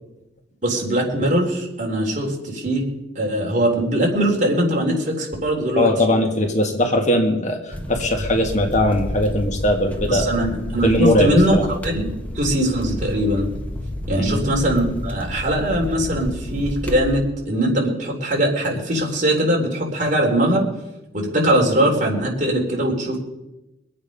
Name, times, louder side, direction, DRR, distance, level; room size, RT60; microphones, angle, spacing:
voice 1, 0.6-2.8 3.2-5.9 10.1-12.1 12.4-13.5 14.1-20.6 21.1-23.2, right 1 dB, 45° right, -1 dB, 3.7 m, -21 dB
voice 2, 5.8-10.3 10.8-11.6 14.2-14.4, left 1 dB, 40° left, 3 dB, 1.8 m, -20 dB
sound 1, 7.7-17.1, left 1 dB, 10° left, 1.2 m, -30 dB
24.0 x 8.7 x 5.4 m, 0.97 s
head